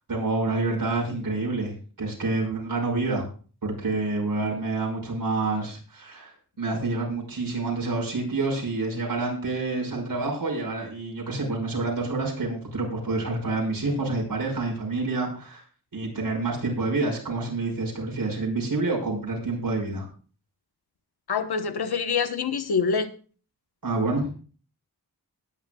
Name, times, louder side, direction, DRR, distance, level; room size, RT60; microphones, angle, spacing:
voice 1, 0.0-3.3 3.6-6.3 6.6-15.6 15.9-20.1 23.8-24.3, right 3 dB, 60° right, 0 dB, 5.9 m, -28 dB
voice 2, 21.3-23.1, left 5 dB, 90° left, 9 dB, 1.3 m, -25 dB
20.5 x 10.5 x 2.4 m, 0.40 s
wide cardioid pair, 120°, 37 cm